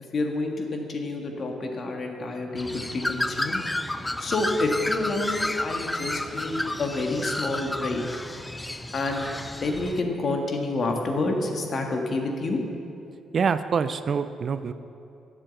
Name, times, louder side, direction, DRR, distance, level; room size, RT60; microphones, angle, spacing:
voice 1, 0.1-3.6 4.2-8.1 8.9-9.3 9.6-12.6, left 2 dB, 45° left, 2 dB, 1.7 m, -28 dB
Bird, 2.6-10.0, left 1 dB, 10° left, 0.6 m, -31 dB
voice 2, 13.3-14.7, right 6 dB, 50° right, 12 dB, 0.5 m, -25 dB
11.0 x 7.6 x 7.7 m, 2.7 s
cardioid pair, 90°, 0 cm